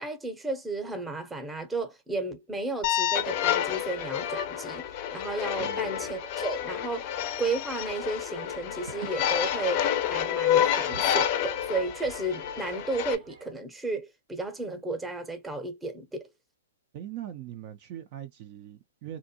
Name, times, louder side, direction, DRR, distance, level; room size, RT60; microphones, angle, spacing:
voice 1, 0.0-7.1 7.4-16.3, right 2 dB, 10° right, 0.7 m, -33 dB
sound 1, 2.8-13.1, left 10 dB, 40° left, 0.5 m, -29 dB
voice 2, 5.6-6.0 16.9-19.2, right 11 dB, 40° right, 0.4 m, -41 dB
sound 2, 8.4-13.5, right 5 dB, 75° right, 0.9 m, -49 dB
2.5 x 2.2 x 2.7 m
hypercardioid pair, 135°, 0 cm